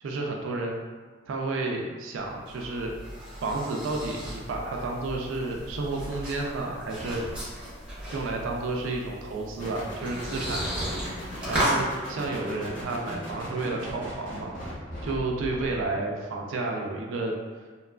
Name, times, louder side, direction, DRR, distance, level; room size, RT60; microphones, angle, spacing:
voice 1, 0.0-0.8 1.3-2.9 3.4-7.2 8.1-10.6 11.5-14.5 15.0-17.3, right 3 dB, 80° right, 0 dB, 0.3 m, -31 dB
sound 1, 2.2-11.8, equal, 5° right, 0.7 m, -35 dB
sound 2, 9.6-15.9, equal, 40° left, 0.7 m, -39 dB
2.8 x 2.3 x 2.2 m, 1.5 s
head